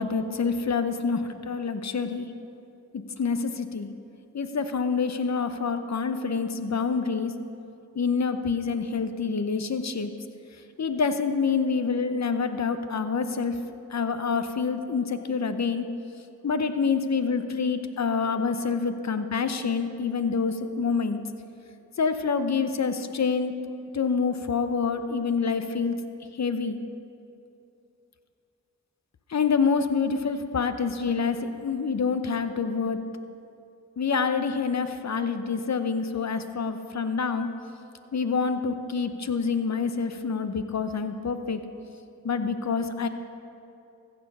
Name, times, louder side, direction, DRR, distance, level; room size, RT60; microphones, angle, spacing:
voice 1, 0.0-2.3 2.9-3.9 4.3-7.4 7.9-10.1 10.8-13.6 13.9-15.9 16.4-21.2 22.0-23.5 23.9-26.0 26.3-26.8 29.3-33.0 34.0-37.5 38.1-41.6 42.2-43.1, left 5 dB, 55° left, 9 dB, 0.8 m, -27 dB
14.5 x 7.0 x 5.4 m, 2.6 s
cardioid pair, 40°, 32 cm